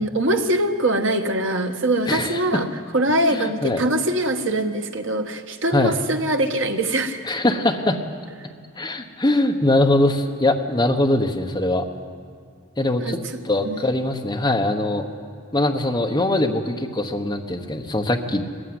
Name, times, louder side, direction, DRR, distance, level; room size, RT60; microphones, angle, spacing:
voice 1, 0.0-2.7 2.9-7.2 13.0-13.2 13.6-13.8, right 1 dB, 65° right, 5 dB, 1.3 m, -22 dB
voice 2, 2.1-2.6 3.3-3.8 5.7-5.9 7.2-8.0 8.8-11.8 12.8-13.2 13.4-15.0 15.5-18.4, left 1 dB, 20° left, 2 dB, 1.2 m, -22 dB
20.0 x 15.0 x 9.6 m, 2.2 s
head